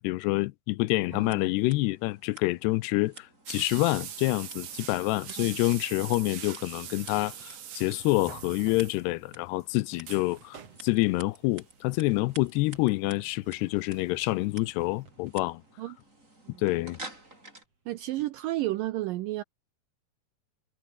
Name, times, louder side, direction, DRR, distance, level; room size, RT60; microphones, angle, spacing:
voice 1, 0.0-15.6 16.6-17.0, left 21 dB, 85° left, 2.7 m, -27 dB
Scissors, 1.1-17.7, right 2 dB, 15° right, 7.6 m, -51 dB
voice 2, 1.1-1.5 5.4-5.5 15.8-16.0 16.4-16.6 17.9-19.4, right 16 dB, 80° right, 2.0 m, -32 dB
sound 1, 3.5-18.4, right 3 dB, 35° right, 6.9 m, -60 dB
sound 2, 3.5-9.3 9.6-9.7 9.9-10.8 11.9-12.1 12.7-14.0 14.3-14.4 14.8-14.9, right 9 dB, 50° right, 2.1 m, -42 dB
omnidirectional pair, 4.8 m